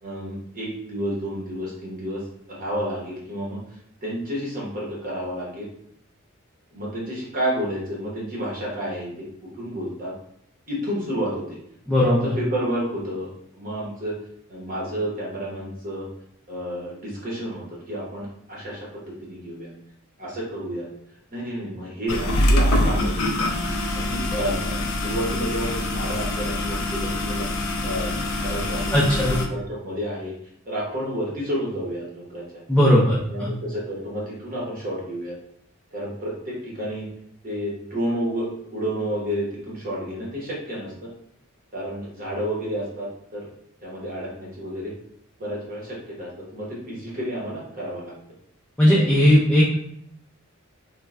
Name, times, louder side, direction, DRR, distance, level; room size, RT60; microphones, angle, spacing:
voice 1, 0.0-2.2 2.5-3.6 4.0-5.7 6.7-9.1 9.4-10.1 10.7-11.6 12.0-14.1 14.5-16.1 16.5-19.7 20.2-20.9 21.3-23.4 23.9-27.5 27.8-30.3 30.7-32.6 33.3-35.3 35.9-37.1 37.4-41.1 41.7-43.5 43.8-44.9 45.4-48.1, equal, 40° right, -5 dB, 0.8 m, -30 dB
voice 2, 11.9-12.3 28.9-29.4 32.7-33.5 48.8-49.8, equal, 5° left, -8 dB, 0.4 m, -18 dB
sound 1, 22.1-29.5, left 1 dB, 70° left, 0.5 m, -24 dB
3.1 x 2.2 x 2.4 m, 0.72 s
head